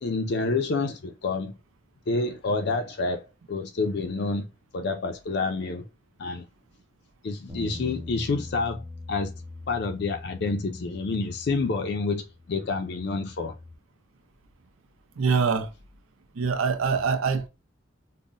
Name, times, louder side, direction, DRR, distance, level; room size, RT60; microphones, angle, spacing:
voice 1, 0.0-1.5 2.1-4.5 4.7-5.9 6.2-6.4 7.2-8.8 9.1-9.3 9.7-13.5, left 3 dB, 55° left, 0.4 m, -28 dB
sound 1, 7.5-13.7, left 2 dB, 10° right, 0.6 m, -42 dB
voice 2, 15.2-15.7 16.4-17.5, right 5 dB, 85° right, 0.5 m, -24 dB
5.3 x 2.1 x 2.5 m
head